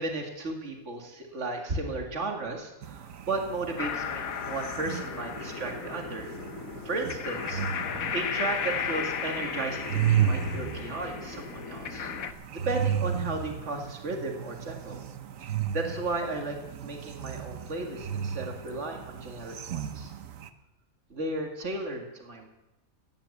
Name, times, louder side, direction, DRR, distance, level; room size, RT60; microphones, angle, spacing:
voice 1, 0.0-6.3 6.8-7.6 8.1-12.1 12.5-15.0 15.4-20.1 21.1-22.5, right 2 dB, 60° right, 2 dB, 2.3 m, -34 dB
sound 1, 2.8-20.5, right 8 dB, 75° right, 1.3 m, -34 dB
sound 2, 3.8-12.3, left 8 dB, 85° left, 1.4 m, -35 dB
16.5 x 10.0 x 7.2 m, 0.99 s
omnidirectional pair, 1.4 m